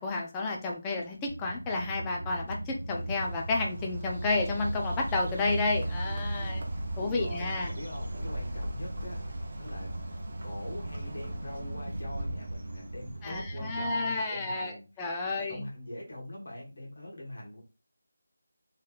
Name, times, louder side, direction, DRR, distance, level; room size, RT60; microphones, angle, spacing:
voice 1, 0.0-6.6 7.0-7.7 13.2-15.6, left 3 dB, 10° left, 0 dB, 0.4 m, -31 dB
sound 1, 1.3-13.9, right 1 dB, 90° right, 0.4 m, -38 dB
Bird, 2.5-13.9, equal, 40° right, 0.7 m, -41 dB
voice 2, 7.0-15.0 15.3-17.6, left 1 dB, 55° left, -2 dB, 1.4 m, -43 dB
3.1 x 3.0 x 2.3 m, 0.29 s
figure-of-eight pair, 175°, 0 cm